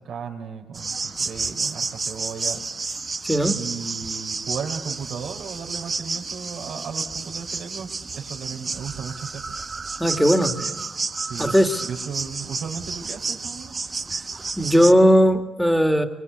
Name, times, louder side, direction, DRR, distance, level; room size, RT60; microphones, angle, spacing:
voice 1, 0.0-2.6 3.5-9.5 10.6-10.8 11.3-13.7, right 6 dB, 70° right, 4 dB, 4.2 m, -35 dB
sound 1, 0.7-14.9, right 4 dB, 35° right, 1.2 m, -31 dB
voice 2, 3.2-3.6 10.0-10.5 11.4-11.8 14.6-16.1, equal, ahead, 7 dB, 2.4 m, -17 dB
24.5 x 23.0 x 8.4 m, 1.1 s
cardioid pair, 90°, 0 cm